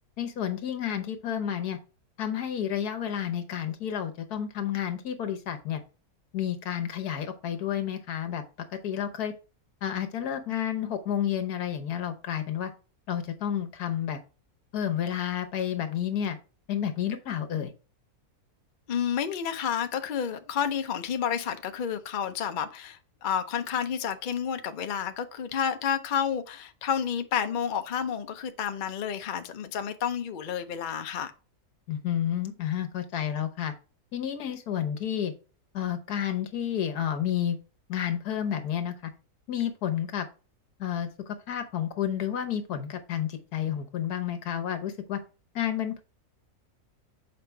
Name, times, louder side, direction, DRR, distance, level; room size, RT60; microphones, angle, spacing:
voice 1, 0.2-1.8 2.2-5.8 6.3-8.4 8.8-9.3 9.8-12.7 13.1-14.2 14.7-16.4 16.7-17.7 31.9-33.7 34.1-35.3 35.7-37.6 37.9-39.1 39.5-40.3 40.8-45.2 45.5-46.0, left 9 dB, 75° left, 1.5 m, -30 dB
voice 2, 18.9-31.3, left 8 dB, 60° left, 0.5 m, -30 dB
6.7 x 4.8 x 3.4 m
omnidirectional pair, 1.7 m